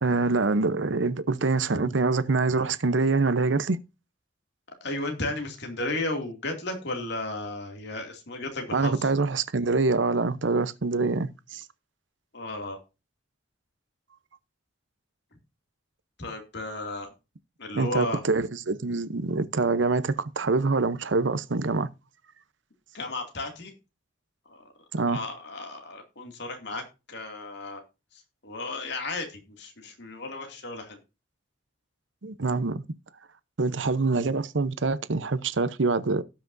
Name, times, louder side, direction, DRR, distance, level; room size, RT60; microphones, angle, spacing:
voice 1, 0.0-3.8 8.7-11.6 17.7-21.9 24.9-25.2 32.2-32.8 33.6-36.2, right 3 dB, 75° right, 0.8 m, -25 dB
voice 2, 4.8-9.1 12.3-12.8 16.2-17.1 17.6-18.2 22.9-23.7 24.5-24.6 25.0-27.8 28.1-31.0, left 2 dB, 65° left, 2.5 m, -34 dB
17.5 x 5.9 x 2.6 m
head